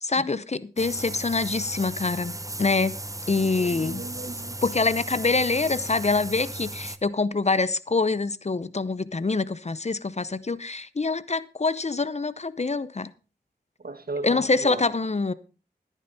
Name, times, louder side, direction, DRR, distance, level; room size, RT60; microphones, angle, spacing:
voice 1, 0.0-3.0 3.3-4.0 4.6-13.1 14.2-15.3, left 3 dB, 40° left, 0.7 m, -25 dB
sound 1, 0.8-7.0, right 1 dB, 20° right, 1.0 m, -36 dB
voice 2, 3.4-4.6 13.8-14.8, right 3 dB, 60° right, 1.6 m, -37 dB
14.5 x 9.2 x 4.1 m
cardioid pair, 45°, 18 cm